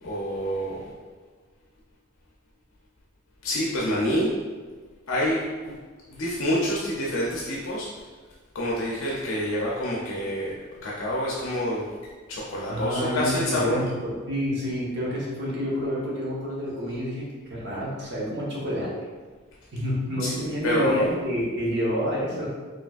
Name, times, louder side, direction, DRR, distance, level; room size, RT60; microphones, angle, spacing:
voice 1, 0.0-0.9 3.4-4.3 5.1-5.7 6.1-7.9 8.5-10.5 10.8-11.9 12.3-13.8 20.2-20.3 20.6-21.1, equal, 75° left, -4 dB, 0.6 m, -27 dB
voice 2, 12.7-18.9 19.7-22.5, equal, 55° right, -6 dB, 1.2 m, -29 dB
4.8 x 3.2 x 2.4 m, 1.4 s
head